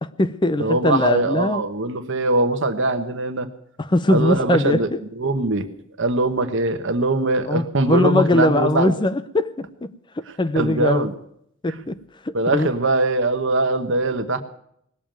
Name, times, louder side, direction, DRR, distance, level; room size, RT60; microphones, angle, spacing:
voice 1, 0.0-1.7 3.8-5.0 7.5-11.1 11.6-12.7, left 2 dB, 25° left, 0.5 m, -21 dB
voice 2, 0.6-3.5 4.1-4.9 5.2-5.7 6.0-8.9 10.5-11.1 12.3-14.4, right 2 dB, 65° right, 1.2 m, -21 dB
19.0 x 7.3 x 9.0 m
head